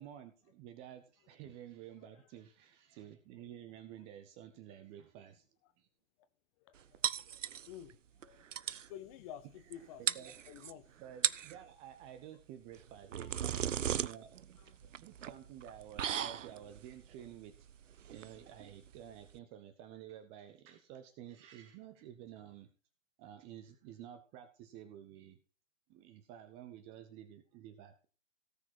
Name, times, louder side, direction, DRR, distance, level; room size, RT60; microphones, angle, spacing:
voice 1, 0.0-5.5 5.8-5.9 10.1-10.3 11.0-14.3 14.6-14.7 15.0-17.6 18.1-22.7 23.2-25.4 25.9-28.1, right 10 dB, 15° right, 0.6 m, -52 dB
voice 2, 6.6-7.0 7.3-10.0 10.5-10.9 13.2-13.5 14.6-14.9, left 10 dB, 25° left, 0.8 m, -52 dB
sound 1, 7.0-7.9 8.2-8.3 8.5-8.9 9.7-9.8 10.1-10.7 11.1-11.6 12.7-19.4, right 9 dB, 70° right, 0.6 m, -37 dB
17.5 x 6.0 x 4.4 m
figure-of-eight pair, 120°, 39 cm